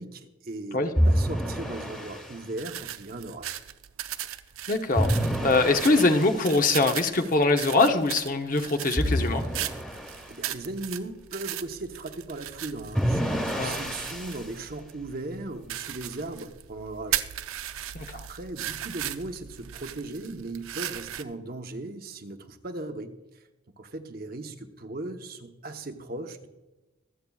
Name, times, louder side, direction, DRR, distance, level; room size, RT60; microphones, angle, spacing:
voice 1, 0.0-3.6 10.3-17.2 18.1-23.5 23.8-26.5, right 2 dB, 45° right, 6 dB, 0.8 m, -38 dB
sound 1, 1.0-2.4 4.9-6.5 9.0-10.3 12.9-14.5, equal, 5° left, 1.3 m, -27 dB
sound 2, 2.6-21.2, right 11 dB, 80° right, 0.5 m, -38 dB
voice 2, 4.7-5.1 5.4-9.5 13.6-13.8 17.9-18.2, left 3 dB, 40° left, 5 dB, 0.8 m, -23 dB
25.0 x 8.4 x 2.3 m, 1.1 s
head